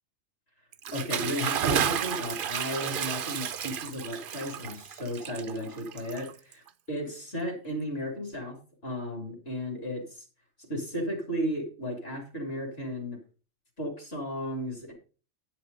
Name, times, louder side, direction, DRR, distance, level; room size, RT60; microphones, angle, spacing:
Bathtub (filling or washing) / Splash splatter, 0.7-6.7, right 8 dB, 55° right, 0.7 m, -32 dB
voice 1, 0.9-8.6 8.8-10.2 10.6-13.2 13.8-14.9, equal, 50° left, 2 dB, 3.2 m, -34 dB
9.5 x 5.9 x 5.3 m, 0.37 s
omnidirectional pair, 1.3 m